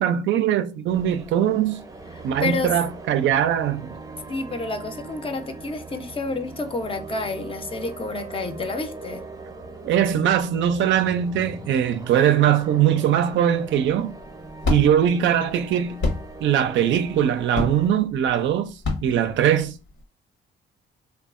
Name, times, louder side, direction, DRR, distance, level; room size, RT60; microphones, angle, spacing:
voice 1, 0.0-1.8 2.2-3.9 9.8-14.1 14.7-16.0 16.4-18.7 19.0-19.7, right 10 dB, 70° right, 0.4 m, -21 dB
sound 1, 0.9-17.9, right 3 dB, 15° right, 0.6 m, -41 dB
voice 2, 2.1-2.8 4.3-9.2, left 3 dB, 25° left, 0.4 m, -29 dB
sound 2, 13.8-20.0, left 3 dB, 70° left, 0.9 m, -29 dB
2.7 x 2.3 x 2.4 m
cardioid pair, 90°, 20 cm